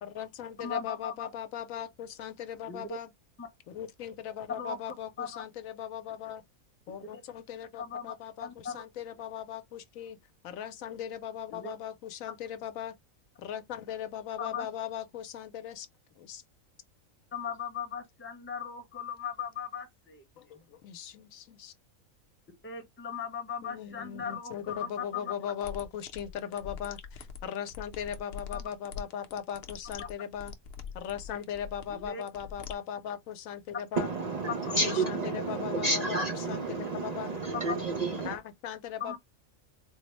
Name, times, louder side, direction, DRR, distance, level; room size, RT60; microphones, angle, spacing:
voice 1, 0.0-3.1 3.7-6.4 6.9-10.2 10.4-13.0 13.4-15.9 16.2-16.4 20.4-21.7 23.6-30.5 30.9-34.1 34.7-37.4 38.2-39.2, left 9 dB, 80° left, 1.0 m, -39 dB
voice 2, 0.6-1.3 2.7-3.0 3.4-3.5 4.6-4.8 5.2-5.4 7.8-8.1 8.4-8.8 11.5-11.7 14.4-14.7 17.3-20.2 20.5-20.6 22.6-25.3 28.5-28.7 31.9-32.2 37.5-37.8 39.0-39.2, left 6 dB, 10° left, 0.6 m, -38 dB
sound 1, 25.6-32.7, left 6 dB, 55° left, 0.7 m, -43 dB
voice 3, 34.0-38.4, right 3 dB, 70° right, 0.3 m, -31 dB
4.0 x 2.0 x 3.0 m
omnidirectional pair, 1.4 m